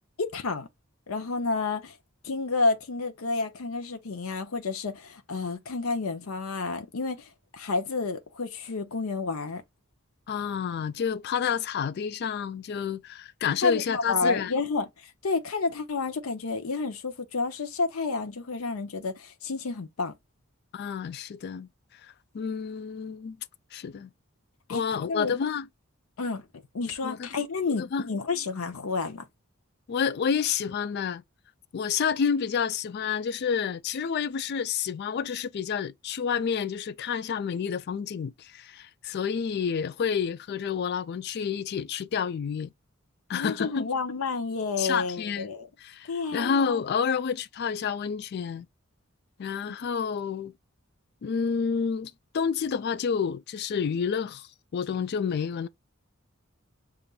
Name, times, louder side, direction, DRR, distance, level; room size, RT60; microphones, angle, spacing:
voice 1, 0.2-0.7 1.1-2.0 2.2-9.6 13.6-20.2 24.7-24.8 25.1-25.4 26.2-29.3 43.3-45.7 46.1-46.5, left 3 dB, 90° left, 0.7 m, -30 dB
voice 2, 10.3-14.5 20.7-21.7 22.0-23.4 23.7-24.1 24.7-25.7 27.0-27.3 27.8-28.1 29.9-31.2 31.7-42.7 43.3-43.9 44.8-45.5 45.8-48.7 49.4-50.5 51.2-55.7, left 6 dB, 50° left, 0.3 m, -29 dB
6.7 x 2.5 x 2.3 m
head